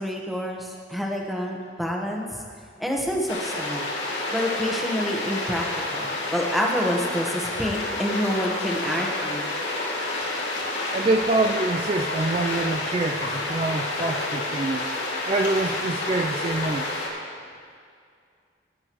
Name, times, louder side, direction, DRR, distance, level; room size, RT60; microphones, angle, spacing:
voice 1, 0.0-2.4 2.8-3.9 4.3-5.7 5.9-9.5, equal, ahead, -1 dB, 1.1 m, -28 dB
sound 1, 3.3-17.1, left 2 dB, 80° left, 2.3 m, -29 dB
voice 2, 10.9-14.9 15.2-16.9, right 2 dB, 30° right, 5 dB, 0.3 m, -25 dB
18.0 x 9.8 x 3.0 m, 2.2 s
head